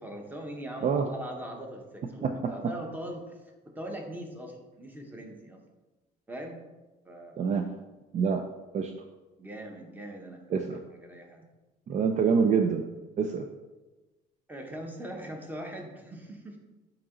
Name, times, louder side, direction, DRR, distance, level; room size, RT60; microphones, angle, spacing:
voice 1, 0.0-3.4 3.6-5.6 6.3-6.6 7.0-7.4 9.4-11.5 14.5-16.6, right 1 dB, 10° right, 1 dB, 1.1 m, -41 dB
voice 2, 2.2-2.5 7.4-7.7 8.1-8.4 8.7-8.9 10.5-10.8 11.9-12.9 13.2-13.5, right 6 dB, 45° right, 5 dB, 0.4 m, -26 dB
8.5 x 2.9 x 3.8 m, 1.1 s
cardioid pair, 110°, 17 cm